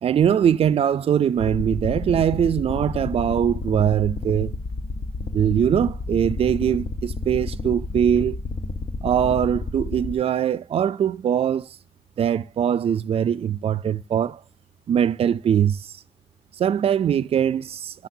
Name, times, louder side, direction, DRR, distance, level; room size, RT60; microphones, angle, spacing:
voice 1, 0.0-4.5 5.3-8.4 9.0-11.7 12.2-14.4 14.9-15.9 16.6-18.1, right 9 dB, 80° right, 0.4 m, -22 dB
sound 1, 1.4-10.1, left 3 dB, 65° left, 1.0 m, -31 dB
12.5 x 6.3 x 2.7 m
wide cardioid pair, 175°, 10 cm